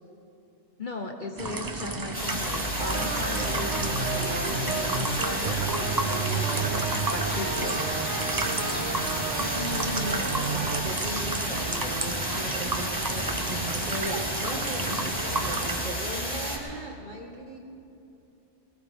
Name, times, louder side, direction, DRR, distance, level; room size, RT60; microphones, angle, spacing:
voice 1, 0.8-7.8, left 2 dB, 45° left, 2 dB, 1.0 m, -37 dB
sound 1, 1.4-15.8, right 2 dB, 20° right, 0.6 m, -32 dB
sound 2, 2.1-16.6, equal, 5° left, 2.7 m, -32 dB
sound 3, 2.8-10.8, right 5 dB, 65° right, 1.5 m, -32 dB
voice 2, 9.4-17.6, right 1 dB, 40° right, -1 dB, 2.0 m, -37 dB
21.0 x 19.0 x 3.6 m, 2.8 s
omnidirectional pair, 1.3 m